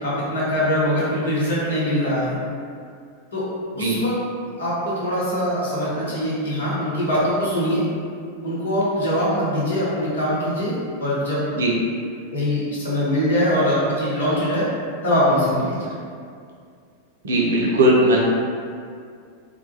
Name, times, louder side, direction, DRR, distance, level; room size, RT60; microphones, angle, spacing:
voice 1, 0.0-2.4 3.3-3.4 3.8-4.1 4.6-7.8 8.4-11.4 12.3-14.7 15.0-15.9, equal, 70° left, -9 dB, 0.8 m, -22 dB
voice 2, 17.2-18.2, right 1 dB, 65° right, -3 dB, 0.4 m, -18 dB
2.2 x 2.1 x 2.9 m, 2.2 s
figure-of-eight pair, 90°, 0 cm